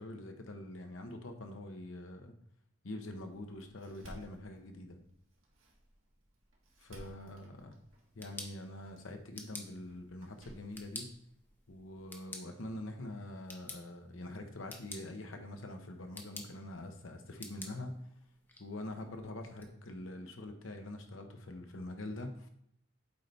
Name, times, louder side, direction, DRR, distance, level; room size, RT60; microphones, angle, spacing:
voice 1, 0.0-2.4 2.8-5.0 6.8-7.8 8.1-11.1 11.7-18.1 18.6-22.5, left 1 dB, 80° left, 5 dB, 1.0 m, -44 dB
Door, 3.1-12.1, right 1 dB, 80° right, 1.6 m, -59 dB
sound 1, 7.9-19.7, left 2 dB, 10° left, 0.7 m, -52 dB
8.3 x 3.4 x 4.1 m, 0.69 s
head